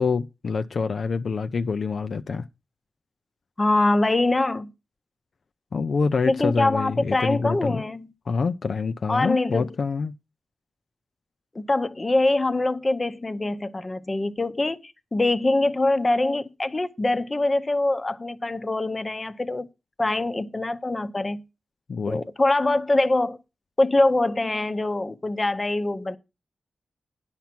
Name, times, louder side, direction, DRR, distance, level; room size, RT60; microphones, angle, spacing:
voice 1, 0.0-2.5 5.7-7.8 8.3-10.1 21.9-22.2, left 5 dB, 60° left, 0.5 m, -26 dB
voice 2, 3.6-4.7 6.3-8.1 9.1-9.7 11.5-19.7 20.0-21.4 22.1-23.4 23.8-26.2, left 2 dB, 25° left, 0.7 m, -23 dB
10.5 x 5.8 x 5.9 m
wide cardioid pair, 125°, 0 cm